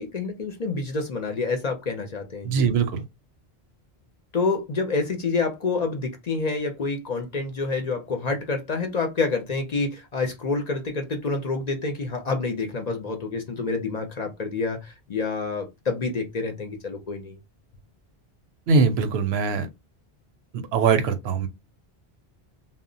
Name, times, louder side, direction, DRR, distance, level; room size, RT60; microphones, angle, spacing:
voice 1, 0.0-2.7 4.3-17.4, left 4 dB, 50° left, 0.6 m, -28 dB
voice 2, 2.4-3.0 18.7-19.7 20.5-21.5, right 5 dB, 80° right, 0.8 m, -22 dB
2.1 x 2.0 x 3.7 m
omnidirectional pair, 1.1 m